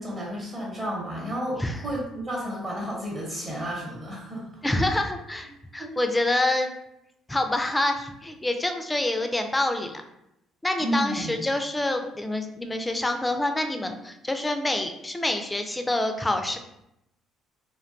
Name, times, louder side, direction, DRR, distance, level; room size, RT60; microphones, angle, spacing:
voice 1, 0.0-4.6 5.8-6.0 10.8-11.4, equal, 40° right, -3 dB, 0.8 m, -32 dB
voice 2, 4.6-6.7 7.3-10.0 10.6-16.6, left 1 dB, 15° left, 6 dB, 0.3 m, -27 dB
2.4 x 2.2 x 2.4 m, 0.83 s
hypercardioid pair, 60°, 0 cm